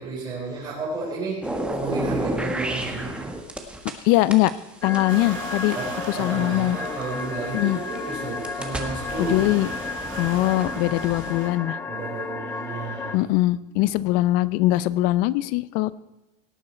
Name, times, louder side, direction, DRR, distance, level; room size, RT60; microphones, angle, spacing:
voice 1, 0.0-3.1 5.7-9.4 11.9-13.2, right 3 dB, 30° right, -5 dB, 4.4 m, -32 dB
sound 1, 1.4-4.0 4.3-7.2 7.8-11.3, right 1 dB, 5° right, 1.4 m, -32 dB
voice 2, 4.0-4.5 4.8-5.8 6.1-6.8 7.5-7.8 9.2-9.7 10.2-11.8 13.1-16.0, left 17 dB, 65° left, 18 dB, 0.6 m, -21 dB
sound 2, 4.8-13.2, left 4 dB, 15° left, 0.6 m, -33 dB
sound 3, 5.1-11.5, right 5 dB, 90° right, 2.7 m, -39 dB
17.5 x 8.9 x 4.4 m, 1.0 s
supercardioid pair, 130°, 16 cm